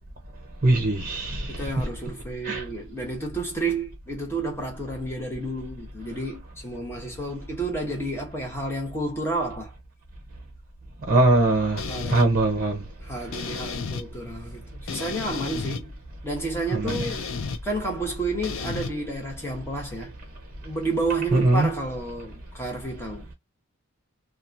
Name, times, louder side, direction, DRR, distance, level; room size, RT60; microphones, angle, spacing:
voice 1, 0.6-1.6 2.4-2.6 11.1-11.8 12.1-12.8 16.7-17.1 21.3-21.7, right 2 dB, 40° right, 0.7 m, -21 dB
voice 2, 1.5-9.7 11.9-12.3 13.0-16.0 16.2-17.3 17.6-20.1 20.6-23.3, right 2 dB, 10° left, 1.0 m, -31 dB
sound 1, 11.8-12.3 13.3-14.0 14.9-15.8 16.9-17.6 18.4-18.9, left 5 dB, 60° left, 0.5 m, -32 dB
2.8 x 2.4 x 2.5 m
head